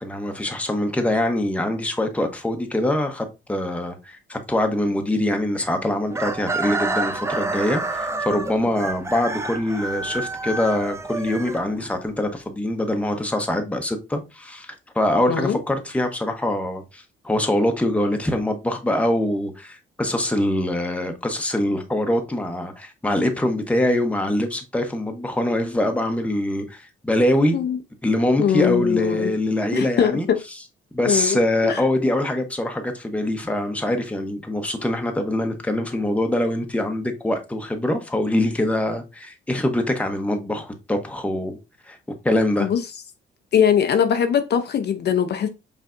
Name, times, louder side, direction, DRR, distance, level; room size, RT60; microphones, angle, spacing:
voice 1, 0.0-27.6 28.0-30.3 30.9-41.6 41.9-42.0 42.2-42.7, left 1 dB, 5° left, 0.9 m, -23 dB
Chicken rooster, 6.1-12.1, right 2 dB, 15° right, 0.5 m, -28 dB
voice 2, 28.4-29.3 29.7-30.4 31.1-31.8 42.6-42.8 43.5-45.5, left 8 dB, 55° left, 0.6 m, -21 dB
5.3 x 3.3 x 2.5 m
cardioid pair, 90°, 20 cm